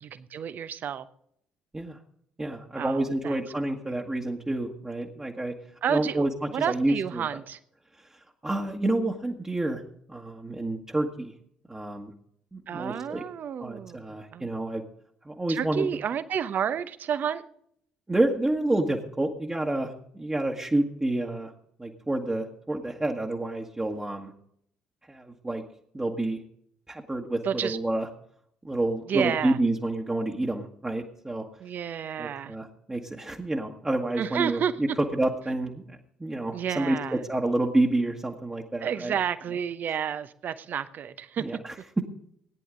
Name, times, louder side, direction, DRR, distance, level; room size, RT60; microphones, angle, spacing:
voice 1, 0.0-1.1 2.8-3.4 5.8-7.6 12.7-14.5 15.5-17.4 27.4-27.8 29.1-29.6 31.6-32.5 34.2-34.7 36.5-37.2 38.8-41.6, right 8 dB, 45° right, 0.8 m, -30 dB
voice 2, 2.4-5.5 5.9-7.2 8.0-9.8 10.1-11.3 11.7-12.1 12.5-13.2 13.6-14.8 15.2-15.9 18.1-21.5 21.8-24.3 25.1-25.6 25.9-26.4 26.9-28.1 28.6-31.5 32.2-39.2 41.4-41.7, right 2 dB, 15° right, 1.5 m, -29 dB
18.0 x 10.0 x 3.8 m
figure-of-eight pair, 50°, 4 cm